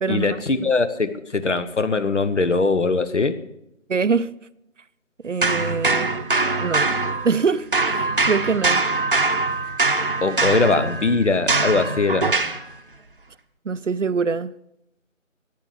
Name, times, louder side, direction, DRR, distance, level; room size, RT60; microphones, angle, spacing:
voice 1, 0.1-3.4 10.2-12.3, left 3 dB, 60° left, 1.2 m, -21 dB
voice 2, 3.9-4.4 5.2-6.1 6.6-7.0 7.2-8.8 13.6-14.5, right 5 dB, 65° right, 0.6 m, -24 dB
sound 1, 5.4-7.5 7.7-12.6, right 3 dB, 40° right, 0.9 m, -22 dB
14.0 x 9.5 x 6.7 m
figure-of-eight pair, 160°, 40 cm